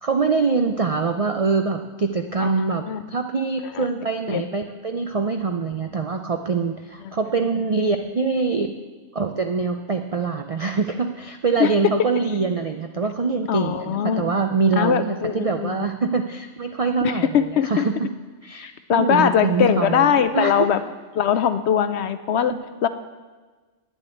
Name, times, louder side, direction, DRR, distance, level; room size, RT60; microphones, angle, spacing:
voice 1, 0.0-8.7 9.1-18.1 18.4-20.7 22.5-22.6, right 4 dB, 55° right, 5 dB, 0.4 m, -24 dB
voice 2, 13.5-14.2 14.8-15.9 17.0-17.8 18.6-20.8 21.1-22.5 22.8-22.9, left 9 dB, 65° left, 12 dB, 0.8 m, -21 dB
9.4 x 7.2 x 9.1 m, 1.3 s
omnidirectional pair, 1.3 m